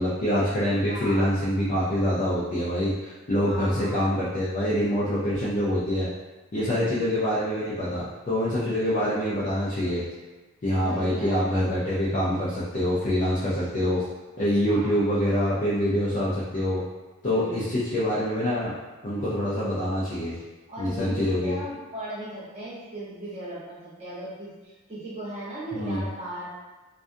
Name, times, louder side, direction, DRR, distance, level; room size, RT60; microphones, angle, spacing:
voice 1, 0.0-6.1 6.5-10.0 10.6-14.0 14.4-16.8 17.2-18.7 19.0-20.4 20.8-21.5 25.7-26.0, equal, 35° left, -9 dB, 0.5 m, -25 dB
voice 2, 0.9-1.3 3.4-4.2 6.5-7.0 10.8-11.4 14.7-15.0 17.2-17.7 20.7-26.5, right 1 dB, 30° right, -9 dB, 0.9 m, -38 dB
2.4 x 2.2 x 2.6 m, 1.2 s
head